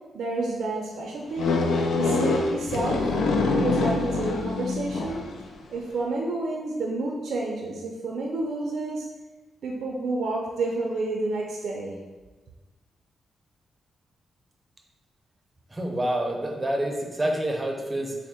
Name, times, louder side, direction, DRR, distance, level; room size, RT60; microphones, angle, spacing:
voice 1, 0.1-1.6 2.0-3.1 3.6-5.2 5.7-9.1 9.6-12.0, right 2 dB, 75° right, -1 dB, 0.4 m, -29 dB
sound 1, 1.4-5.4, left 3 dB, 80° left, 0.4 m, -25 dB
voice 2, 15.7-18.2, right 1 dB, 20° right, 1 dB, 0.6 m, -27 dB
3.5 x 2.1 x 4.2 m, 1.2 s
cardioid pair, 70°, 0 cm